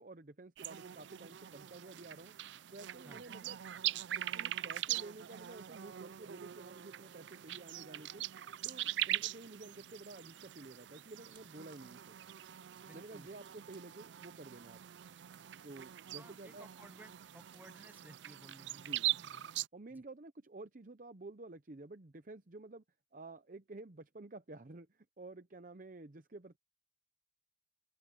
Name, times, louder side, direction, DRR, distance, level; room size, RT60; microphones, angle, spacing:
voice 1, 0.0-2.3 2.7-3.6 4.1-8.2 8.6-12.2 12.9-14.8 15.6-16.7 18.7-19.1 19.7-22.8 23.1-26.6, right 2 dB, 45° right, 0.8 m, -51 dB
sound 1, 0.6-19.7, right 13 dB, 75° right, 0.4 m, -42 dB
sound 2, 8.8-17.6, right 6 dB, 25° right, 3.9 m, -74 dB
voice 2, 12.8-13.3 16.2-19.5 19.9-20.0, right 1 dB, 10° right, 0.7 m, -58 dB
open air
head